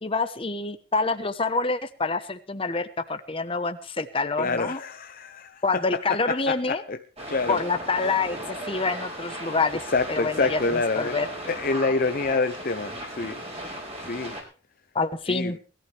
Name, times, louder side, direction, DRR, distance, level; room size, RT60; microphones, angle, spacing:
voice 1, 0.0-4.8 5.6-6.8 7.5-9.8 10.1-11.3 14.9-15.6, left 3 dB, 25° left, 1.1 m, -27 dB
voice 2, 4.4-7.0 7.3-7.6 9.9-11.2 11.5-13.3 14.0-14.4 15.3-15.6, left 3 dB, 45° left, 0.7 m, -27 dB
sound 1, 7.2-14.4, right 1 dB, 30° right, 5.1 m, -36 dB
20.0 x 14.0 x 3.4 m
head